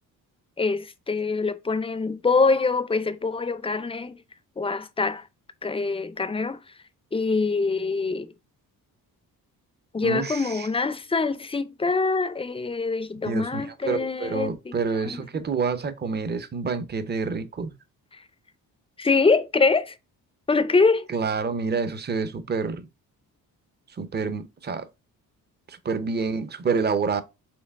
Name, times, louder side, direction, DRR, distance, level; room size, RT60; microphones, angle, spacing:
voice 1, 0.6-4.2 4.6-5.2 5.6-6.6 7.1-8.3 9.9-14.8 15.0-15.2 19.0-20.0 20.5-21.1, left 4 dB, 15° left, 0.5 m, -24 dB
voice 2, 10.0-10.7 13.2-17.7 21.1-22.9 23.9-24.9 25.7-27.2, right 5 dB, 30° right, 0.6 m, -28 dB
4.5 x 3.2 x 2.3 m
cardioid pair, 85°, 37 cm